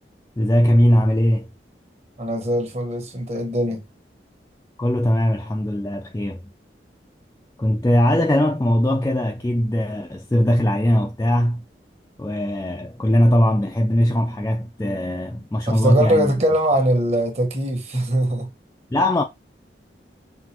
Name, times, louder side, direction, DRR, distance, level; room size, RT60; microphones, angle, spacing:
voice 1, 0.4-1.5 4.8-6.4 7.6-11.6 12.2-16.3 18.9-19.2, equal, 15° left, 0.4 m, -20 dB
voice 2, 2.2-3.8 15.7-18.5, right 1 dB, 35° right, 1.4 m, -21 dB
5.9 x 2.5 x 3.0 m
head